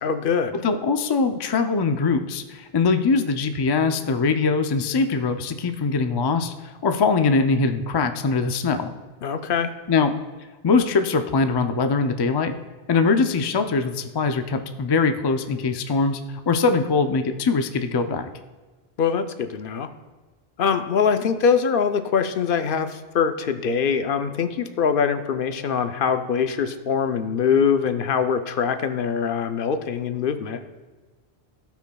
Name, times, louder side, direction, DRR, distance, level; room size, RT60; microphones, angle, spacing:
voice 1, 0.0-0.6 9.2-9.7 19.0-19.9 20.6-30.6, left 6 dB, 65° left, 9 dB, 0.7 m, -23 dB
voice 2, 0.6-8.9 9.9-10.1 10.6-12.5 12.9-16.2 16.5-18.3, left 4 dB, 45° left, 7 dB, 0.3 m, -22 dB
17.0 x 5.8 x 2.3 m, 1.3 s
omnidirectional pair, 1.1 m